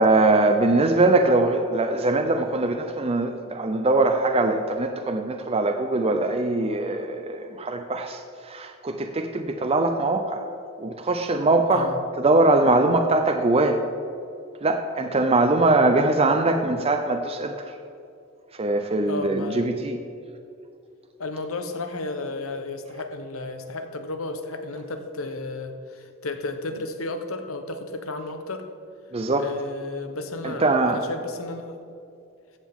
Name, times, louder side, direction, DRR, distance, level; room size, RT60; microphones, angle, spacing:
voice 1, 0.0-8.2 8.5-10.4 10.8-13.8 14.6-17.6 18.6-20.0 29.1-29.5 30.4-31.0, right 2 dB, 30° right, 5 dB, 0.5 m, -22 dB
voice 2, 19.1-19.7 21.2-28.7 29.4-31.8, left 2 dB, 80° left, 7 dB, 1.0 m, -33 dB
14.5 x 8.1 x 3.7 m, 2.5 s
head